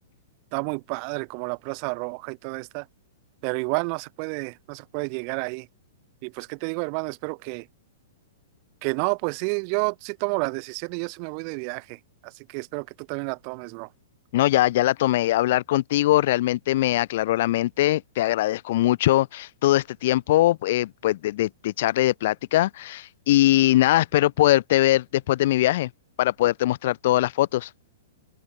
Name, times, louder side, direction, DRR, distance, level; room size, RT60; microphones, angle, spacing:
voice 1, 0.5-2.9 3.4-5.7 6.2-7.7 8.8-13.9, right 40 dB or more, 40° right, 5.6 m, -30 dB
voice 2, 14.3-25.9 26.2-27.7, left 15 dB, 55° left, 3.4 m, -21 dB
open air
hypercardioid pair, 145°, 0 cm